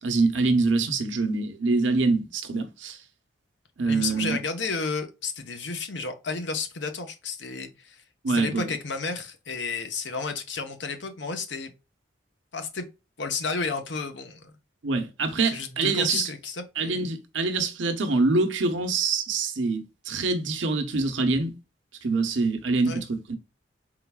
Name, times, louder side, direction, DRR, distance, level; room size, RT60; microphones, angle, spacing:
voice 1, 0.0-3.0 3.8-4.4 8.2-8.7 14.8-16.3 16.8-21.5 22.0-23.4, right 3 dB, 80° right, 0.9 m, -25 dB
voice 2, 3.9-11.7 12.5-12.9 13.2-14.6 15.4-17.1 22.8-23.0, left 4 dB, 70° left, 0.9 m, -32 dB
4.6 x 3.8 x 2.3 m
head